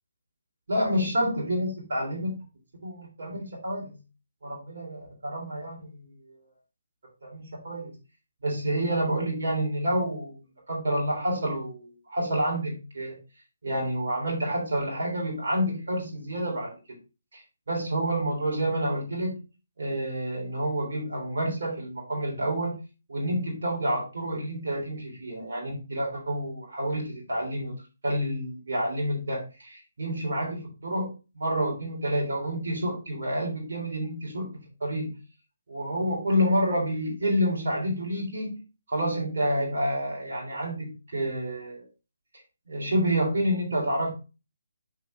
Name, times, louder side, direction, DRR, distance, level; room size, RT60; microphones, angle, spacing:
voice 1, 0.7-2.3 2.8-4.0 4.4-6.4 7.2-7.9 8.4-10.3 10.7-13.2 13.6-17.0 17.3-17.4 17.7-19.4 19.8-22.7 23.1-27.7 28.0-31.1 31.3-35.1 35.7-38.6 38.9-41.8 42.7-44.1, equal, 65° right, -1 dB, 3.3 m, -29 dB
6.2 x 4.6 x 3.4 m, 0.31 s
figure-of-eight pair, 150°, 0 cm